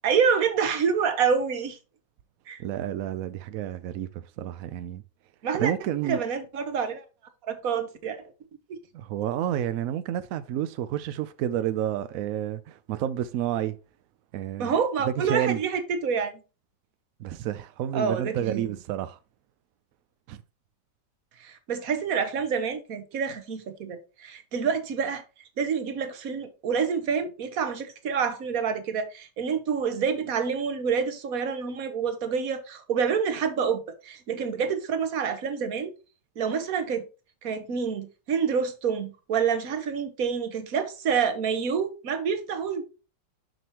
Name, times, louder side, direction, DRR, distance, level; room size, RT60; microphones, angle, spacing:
voice 1, 0.0-1.8 2.5-2.6 5.4-5.7 6.0-7.0 7.4-8.2 8.7-8.8 14.6-16.4 17.9-18.7 21.4-25.2 25.6-35.9 36.4-37.1 37.4-42.8, right 6 dB, 55° right, 1.3 m, -27 dB
voice 2, 2.6-5.0 5.6-6.2 8.9-13.8 14.3-14.7 15.0-15.6 17.2-19.2 20.3-20.4, right 11 dB, 80° right, 0.7 m, -30 dB
6.7 x 6.1 x 2.9 m
omnidirectional pair, 2.0 m